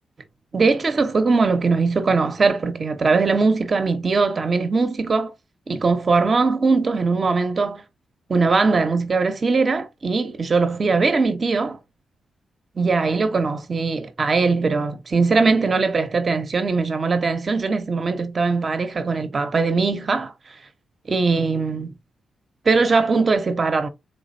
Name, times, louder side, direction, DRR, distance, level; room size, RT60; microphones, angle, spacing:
voice 1, 0.5-5.3 5.7-7.8 8.3-11.8 12.8-20.3 21.1-21.9 22.6-23.9, right 4 dB, 45° right, 1.0 m, -20 dB
3.7 x 3.2 x 2.7 m
cardioid pair, 60°, 0 cm